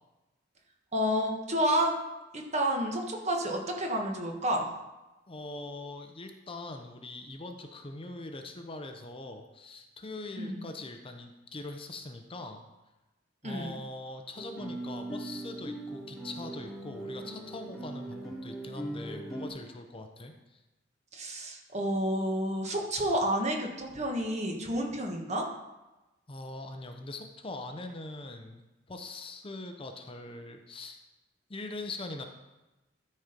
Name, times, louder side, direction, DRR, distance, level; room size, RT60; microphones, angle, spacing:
voice 1, 0.9-2.0 2.3-4.7 10.4-10.7 13.4-13.7 21.1-25.5, equal, 40° right, 1 dB, 1.4 m, -30 dB
voice 2, 5.3-12.6 13.4-20.6 26.3-31.0 31.5-32.2, left 2 dB, 30° left, 5 dB, 0.7 m, -42 dB
Guitar, 14.4-19.5, right 1 dB, ahead, 1.7 m, -40 dB
12.5 x 4.4 x 5.1 m, 1.0 s
head